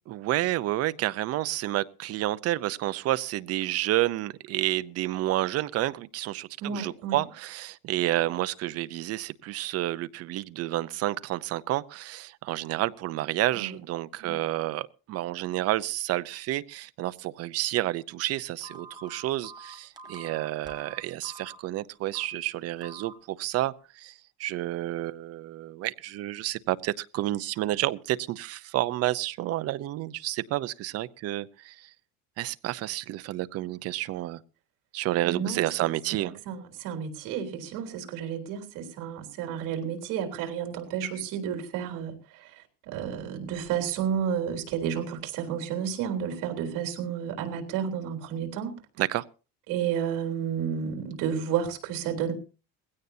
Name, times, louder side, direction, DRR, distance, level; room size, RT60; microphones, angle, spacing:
voice 1, 0.1-31.9 32.4-34.4 34.9-36.4 49.0-49.2, right 15 dB, 50° right, 0.7 m, -30 dB
voice 2, 6.6-7.2 13.5-13.7 14.2-14.4 35.2-35.7 36.2-48.8 49.7-52.3, right 8 dB, 70° right, 3.7 m, -31 dB
Telephone, 18.6-21.6 22.1-22.4 22.8-23.1, right 4 dB, 10° right, 1.6 m, -44 dB
20.5 x 16.5 x 2.7 m
cardioid pair, 165°, 33 cm